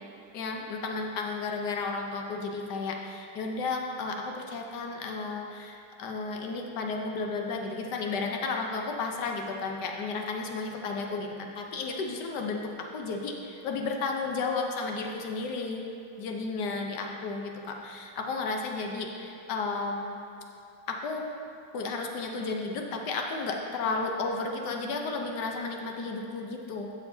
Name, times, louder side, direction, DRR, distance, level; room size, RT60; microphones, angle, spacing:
voice 1, 0.3-15.9 16.2-20.2 20.9-21.3 21.7-26.9, left 3 dB, 70° left, 2 dB, 1.3 m, -33 dB
11.5 x 7.1 x 2.7 m, 2.5 s
omnidirectional pair, 2.0 m